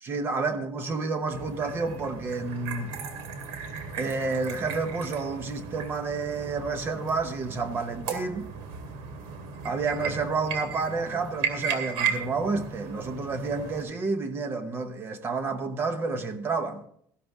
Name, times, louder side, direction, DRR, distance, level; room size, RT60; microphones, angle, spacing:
voice 1, 0.0-2.9 4.0-8.5 9.6-16.9, right 4 dB, 25° right, 0.9 m, -30 dB
sound 1, 1.3-13.8, right 6 dB, 75° right, 2.4 m, -35 dB
14.5 x 12.0 x 3.6 m
cardioid pair, 175°, 9 cm